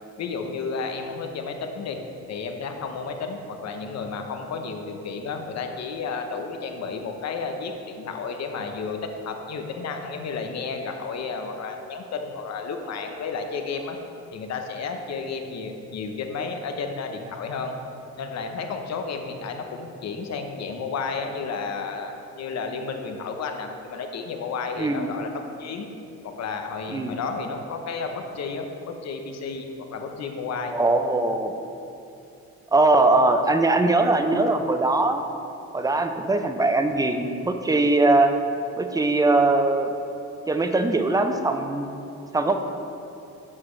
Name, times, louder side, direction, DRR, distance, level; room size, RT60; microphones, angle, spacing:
voice 1, 0.2-2.0 2.3-14.0 14.3-17.7 18.2-25.3 25.6-25.9 26.4-30.8, left 4 dB, 60° left, 5 dB, 0.9 m, -32 dB
voice 2, 30.7-31.5 32.7-35.2 35.7-38.3 38.8-39.9 40.5-41.9 42.3-42.5, right 2 dB, 10° right, 6 dB, 0.6 m, -21 dB
8.2 x 7.4 x 3.2 m, 2.7 s
cardioid pair, 90°, 30 cm